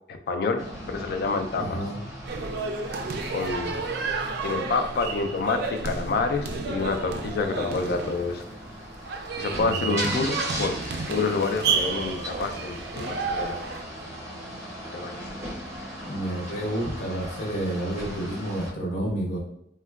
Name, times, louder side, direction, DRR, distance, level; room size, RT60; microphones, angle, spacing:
voice 1, 0.3-1.8 2.3-2.5 3.3-3.8 4.4-8.4 9.4-10.8 11.1-13.6 14.9-15.2, left 4 dB, 55° left, 7 dB, 0.3 m, -28 dB
sound 1, 0.6-18.7, equal, 15° right, 0.7 m, -38 dB
voice 2, 1.6-2.0 9.5-10.2 16.0-19.4, right 1 dB, 75° left, -2 dB, 0.8 m, -30 dB
sound 2, 2.2-13.8, right 4 dB, 55° right, 0.3 m, -31 dB
3.6 x 2.2 x 2.2 m, 0.77 s
head